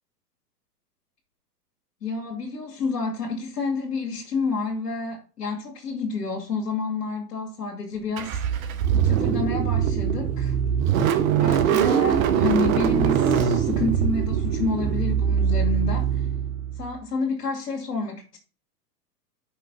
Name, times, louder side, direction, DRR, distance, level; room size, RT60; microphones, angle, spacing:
voice 1, 2.0-8.4 9.0-10.6 11.4-16.2 16.8-18.4, left 4 dB, 80° left, 2.0 m, -29 dB
Car / Engine starting, 8.2-16.9, right 8 dB, 55° right, 1.1 m, -22 dB
5.8 x 5.3 x 5.8 m
hypercardioid pair, 105°, 48 cm